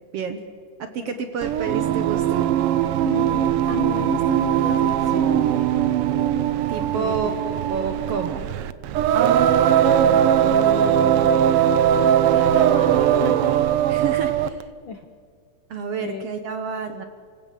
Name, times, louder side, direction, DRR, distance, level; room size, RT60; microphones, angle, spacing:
voice 1, 0.8-2.4 6.7-8.5 13.9-14.7 15.7-17.0, right 6 dB, 60° right, 8 dB, 1.9 m, -29 dB
Singing, 1.4-14.6, right 10 dB, 75° right, 1.3 m, -20 dB
voice 2, 3.0-5.4 6.9-7.4 10.0-13.6 14.8-15.0 16.0-16.3, left 6 dB, 65° left, 7 dB, 1.2 m, -34 dB
28.5 x 16.5 x 7.5 m, 2.1 s
omnidirectional pair, 3.5 m